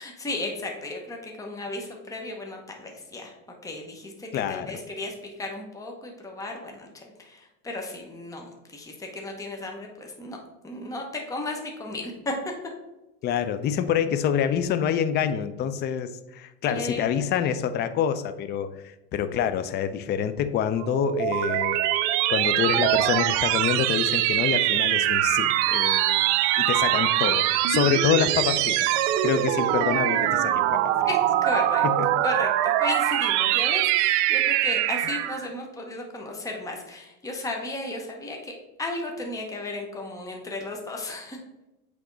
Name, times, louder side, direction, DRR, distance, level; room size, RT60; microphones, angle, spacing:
voice 1, 0.0-3.3 3.6-10.4 10.6-12.3 16.7-17.0 31.1-31.8 32.2-32.5 32.8-38.5 38.8-41.4, left 2 dB, 10° left, 1 dB, 0.9 m, -34 dB
voice 2, 4.3-4.8 13.2-21.8 22.3-26.2 26.6-28.8 29.2-30.9 32.0-32.1, left 8 dB, 30° left, 11 dB, 0.4 m, -26 dB
sound 1, 20.8-35.5, right 13 dB, 70° right, 0.5 m, -23 dB
7.9 x 3.5 x 3.9 m, 0.99 s
supercardioid pair, 115°, 36 cm